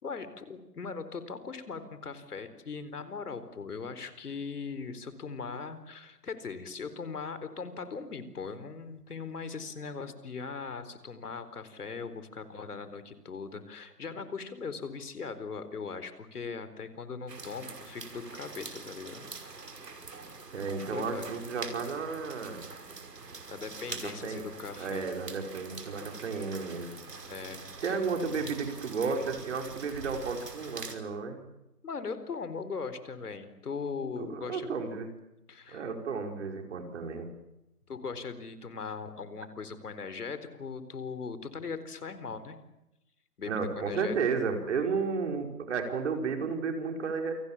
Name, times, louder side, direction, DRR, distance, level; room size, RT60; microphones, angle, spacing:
voice 1, 0.0-19.3 20.7-21.3 23.5-25.1 27.3-28.0 31.8-34.7 35.5-35.8 37.9-42.6 43.4-44.2, left 5 dB, 70° left, 12 dB, 4.3 m, -39 dB
sound 1, 17.3-31.0, right 4 dB, 90° right, 5.7 m, -44 dB
voice 2, 20.5-22.7 23.9-24.4 24.8-26.9 27.8-31.5 34.2-35.1 35.7-37.3 43.5-47.3, right 5 dB, 45° right, 4 dB, 5.2 m, -33 dB
29.0 x 25.5 x 7.4 m, 0.90 s
hypercardioid pair, 160°, 47 cm